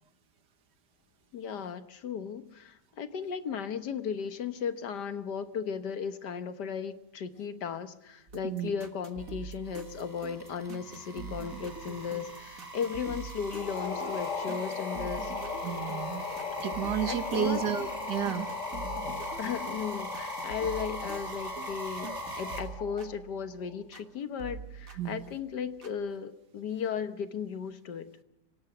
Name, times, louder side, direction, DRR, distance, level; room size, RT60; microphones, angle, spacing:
voice 1, 1.3-15.3 17.0-17.6 19.4-28.1, left 7 dB, 70° left, 1.7 m, -36 dB
sound 1, 8.3-24.1 24.4-26.0, right 5 dB, 50° right, 2.0 m, -45 dB
sound 2, 9.2-22.6, right 2 dB, 10° right, 4.9 m, -42 dB
sound 3, 13.5-23.2, left 6 dB, 45° left, 1.3 m, -38 dB
voice 2, 15.6-16.3 16.6-18.5 25.0-25.3, right 9 dB, 75° right, 1.9 m, -32 dB
27.0 x 17.5 x 6.0 m
omnidirectional pair, 1.9 m